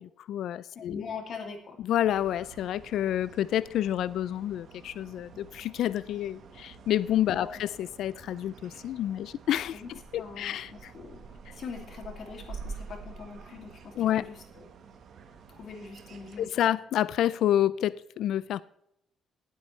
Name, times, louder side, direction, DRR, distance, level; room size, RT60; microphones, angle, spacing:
voice 1, 0.0-1.0 1.8-9.8 10.1-10.9 14.0-14.3 16.4-18.6, left 11 dB, 75° left, 0.3 m, -29 dB
voice 2, 0.7-1.8 7.3-7.6 9.7-9.9 10.2-14.7 15.5-16.5, left 5 dB, 60° left, 2.5 m, -42 dB
sound 1, 2.1-16.5, right 5 dB, 65° right, 1.4 m, -48 dB
18.0 x 8.3 x 3.2 m
cardioid pair, 90°, 0 cm